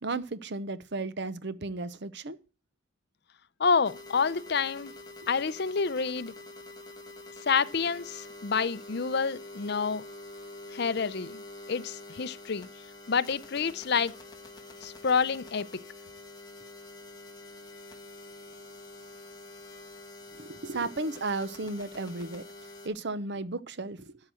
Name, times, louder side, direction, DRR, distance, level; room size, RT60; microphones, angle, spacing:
voice 1, 0.0-2.4 20.4-22.4 22.8-24.1, right 3 dB, 60° right, 0.8 m, -34 dB
voice 2, 3.6-4.9 5.3-6.3 7.4-10.0 10.7-11.4 11.7-12.7 13.1-14.1 14.8-15.8, left 5 dB, 55° left, 0.6 m, -28 dB
sound 1, 3.8-22.9, left 2 dB, 20° left, 1.8 m, -46 dB
13.0 x 4.8 x 7.6 m
head